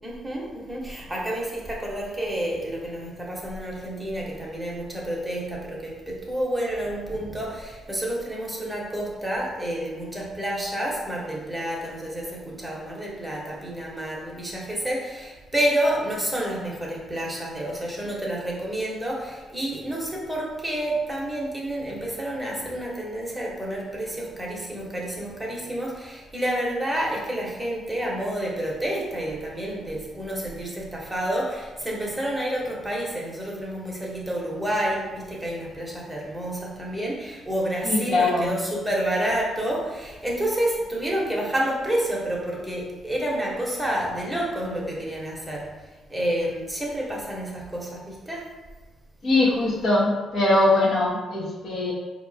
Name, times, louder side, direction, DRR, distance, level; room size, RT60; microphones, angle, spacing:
voice 1, 0.0-48.5, right 1 dB, 5° right, -3 dB, 1.1 m, -29 dB
voice 2, 37.8-38.5 49.2-51.9, left 2 dB, 55° left, -6 dB, 1.2 m, -21 dB
4.3 x 3.0 x 2.8 m, 1.2 s
cardioid pair, 90°, 0 cm